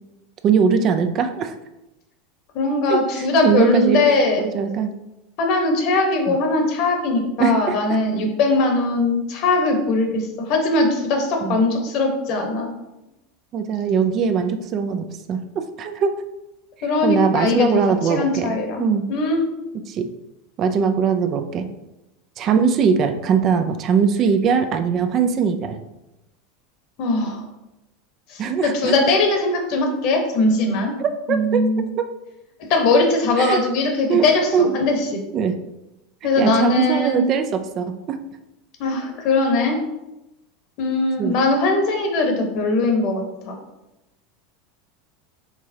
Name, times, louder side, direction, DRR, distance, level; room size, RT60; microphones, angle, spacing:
voice 1, 0.4-1.5 2.9-4.0 4.4-4.9 6.3-6.4 7.4-7.8 11.4-11.6 13.5-15.4 15.8-16.2 17.0-18.5 18.8-19.1 19.9-20.1 20.6-21.7 22.4-25.8 28.4-28.9 31.0-31.6 32.0-32.1 33.4-33.6 34.1-34.7 35.3-35.6 36.2-38.2 41.2-41.4, right 6 dB, 45° right, 7 dB, 0.4 m, -21 dB
voice 2, 2.5-4.4 5.4-12.7 16.8-18.8 19.1-19.4 27.0-27.4 28.3-30.9 31.3-31.9 32.7-35.1 36.2-37.2 38.8-39.8 40.8-43.2, left 2 dB, 55° left, 3 dB, 1.1 m, -20 dB
4.6 x 3.7 x 2.8 m, 0.95 s
hypercardioid pair, 85°, 0 cm